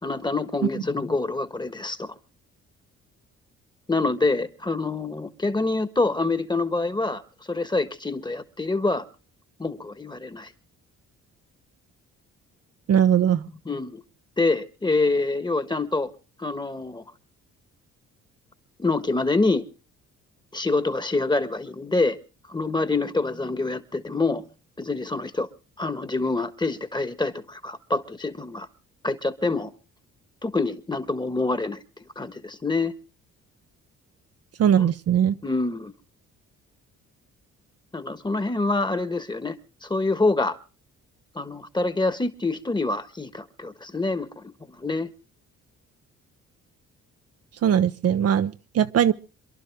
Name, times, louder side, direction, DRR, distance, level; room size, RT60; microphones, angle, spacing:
voice 1, 0.0-2.1 3.9-7.2 7.5-9.0 9.6-10.5 13.6-14.0 14.4-16.1 16.4-17.0 18.8-19.7 20.5-22.2 22.5-24.4 24.8-25.5 25.8-28.7 29.0-29.7 30.4-31.8 32.2-32.9 34.8-34.9 35.4-35.9 37.9-39.6 39.8-40.6 41.3-44.4 44.8-45.1, left 3 dB, 15° left, 1.4 m, -26 dB
voice 2, 12.9-13.5 34.6-35.3 47.6-49.1, right 9 dB, 55° right, 0.7 m, -20 dB
27.5 x 11.5 x 3.5 m
cardioid pair, 90°, 30 cm